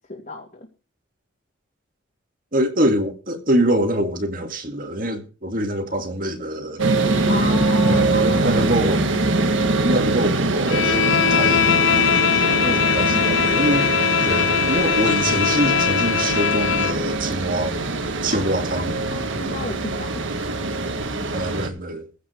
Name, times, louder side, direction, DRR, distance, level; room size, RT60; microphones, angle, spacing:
voice 1, 0.1-0.7 7.3-8.6 9.2-9.3 12.6-13.2 18.3-20.2, left 2 dB, 40° left, 2.8 m, -33 dB
voice 2, 2.5-6.8 7.8-9.1 9.8-12.1 12.3-13.9 14.2-17.8 18.2-19.0 21.3-22.1, right 1 dB, 45° right, 2.1 m, -24 dB
sound 1, 6.8-21.7, right 2 dB, 70° right, 1.6 m, -23 dB
Bowed string instrument, 10.7-17.0, left 9 dB, 65° left, 0.5 m, -21 dB
15.5 x 5.3 x 7.9 m
head